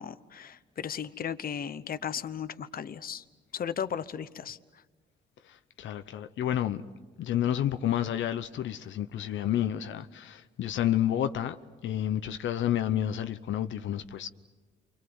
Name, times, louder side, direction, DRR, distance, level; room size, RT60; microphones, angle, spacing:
voice 1, 0.0-3.2 3.5-4.6, left 8 dB, 45° left, 1.0 m, -35 dB
voice 2, 5.4-6.8 7.2-11.6 11.8-14.3, left 11 dB, 70° left, 0.9 m, -30 dB
29.5 x 25.0 x 7.9 m
cardioid pair, 90°, 20 cm